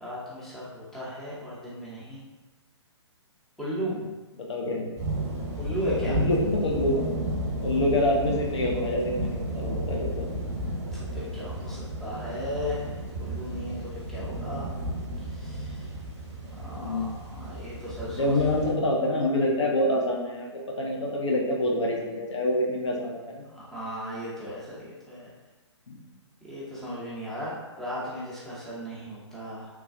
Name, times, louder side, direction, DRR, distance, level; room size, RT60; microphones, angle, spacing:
voice 1, 0.0-2.2 3.6-3.9 5.6-6.2 11.1-12.9 13.2-13.8 14.1-14.7 15.4-15.8 16.6-18.3 23.5-24.7 25.1-25.3 26.5-29.7, equal, ahead, -10 dB, 0.7 m, -35 dB
voice 2, 4.4-4.9 6.0-7.1 7.6-10.3 16.8-17.1 18.0-23.4 25.9-26.0, left 1 dB, 70° left, -1 dB, 0.6 m, -27 dB
sound 1, 5.0-18.7, right 1 dB, 35° right, 0.8 m, -33 dB
3.4 x 2.2 x 2.5 m, 1.2 s
figure-of-eight pair, 130°, 15 cm